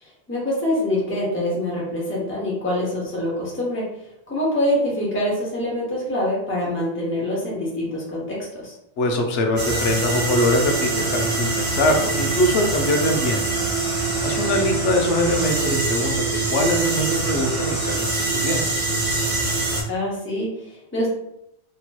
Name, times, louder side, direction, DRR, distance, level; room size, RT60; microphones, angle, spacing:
voice 1, 0.0-3.9 4.3-8.7 19.9-21.1, left 1 dB, 10° left, -5 dB, 0.8 m, -25 dB
voice 2, 9.0-13.6 14.2-16.1 16.5-18.6, left 1 dB, 90° left, 2 dB, 0.9 m, -22 dB
sound 1, 9.6-19.8, right 3 dB, 30° right, 1.0 m, -24 dB
2.9 x 2.9 x 2.2 m, 0.78 s
omnidirectional pair, 1.2 m